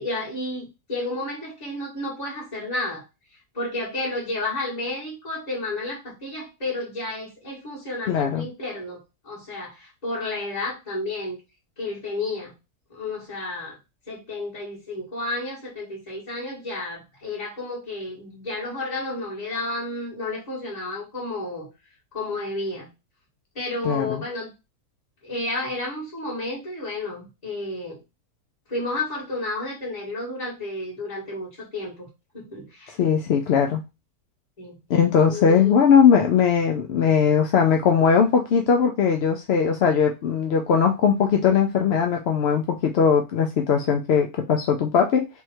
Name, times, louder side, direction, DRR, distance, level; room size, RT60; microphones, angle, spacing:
voice 1, 0.0-3.0 3.5-11.4 11.8-12.5 12.9-13.7 14.1-21.7 22.1-22.9 23.6-24.5 25.2-28.0 28.7-32.1 32.3-33.0 34.6-34.8 35.3-35.8, left 2 dB, 25° left, -8 dB, 2.1 m, -31 dB
voice 2, 8.1-8.5 23.8-24.2 33.0-33.8 34.9-45.3, left 7 dB, 65° left, 3 dB, 0.6 m, -19 dB
3.5 x 3.1 x 4.4 m, 0.26 s
omnidirectional pair, 1.6 m